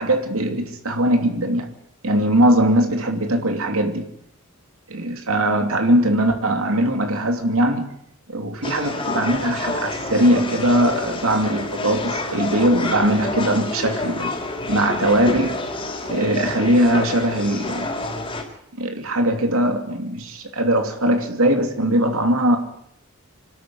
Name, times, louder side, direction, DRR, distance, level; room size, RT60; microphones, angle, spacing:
voice 1, 0.0-1.6 2.0-4.1 4.9-7.9 8.3-14.3 14.7-15.6 16.1-17.9 18.8-22.6, right 1 dB, 75° right, 5 dB, 2.9 m, -20 dB
sound 1, 8.6-18.4, left 2 dB, 25° left, 4.3 m, -28 dB
26.0 x 12.5 x 9.9 m, 0.73 s
head